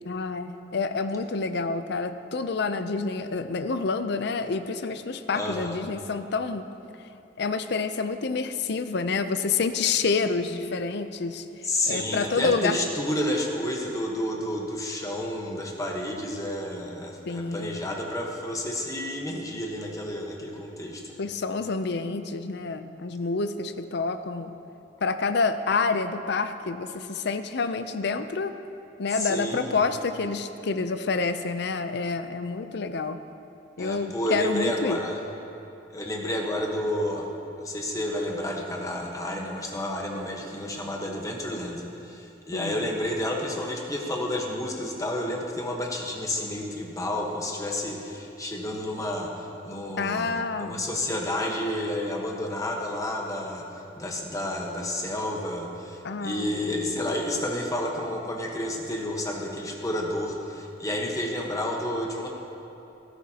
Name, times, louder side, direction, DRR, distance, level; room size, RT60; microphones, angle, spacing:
voice 1, 0.1-6.6 7.4-11.4 11.9-12.8 17.3-17.8 21.2-24.5 25.0-28.5 29.0-33.2 33.8-35.0 42.5-42.8 50.0-50.9 56.0-57.0, left 4 dB, 65° left, 10 dB, 0.6 m, -28 dB
voice 2, 5.3-5.8 11.6-21.0 29.1-29.8 33.8-35.2 35.9-37.3 37.6-62.3, left 1 dB, 20° left, 0 dB, 1.2 m, -30 dB
18.5 x 11.5 x 2.9 m, 2.9 s
head